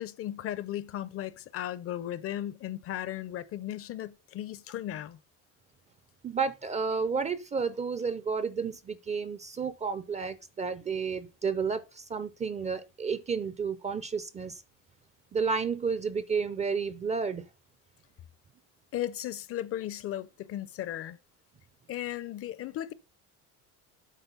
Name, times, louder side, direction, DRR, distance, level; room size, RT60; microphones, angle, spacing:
voice 1, 0.0-5.2 18.9-21.2 21.9-22.9, left 12 dB, 40° left, 0.5 m, -36 dB
voice 2, 6.2-14.6 15.3-17.4, right 5 dB, 20° right, 0.4 m, -31 dB
8.2 x 3.9 x 5.6 m
cardioid pair, 130°, 36 cm